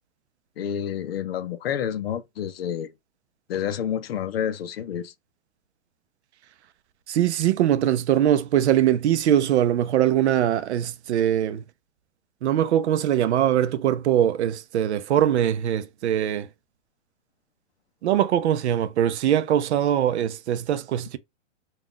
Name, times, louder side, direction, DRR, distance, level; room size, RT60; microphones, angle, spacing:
voice 1, 0.6-2.9 3.5-5.1, left 9 dB, 55° left, 0.5 m, -29 dB
voice 2, 7.1-11.6 12.4-16.5 18.0-21.2, right 11 dB, 60° right, 0.5 m, -22 dB
2.4 x 2.3 x 3.5 m
hypercardioid pair, 160°, 38 cm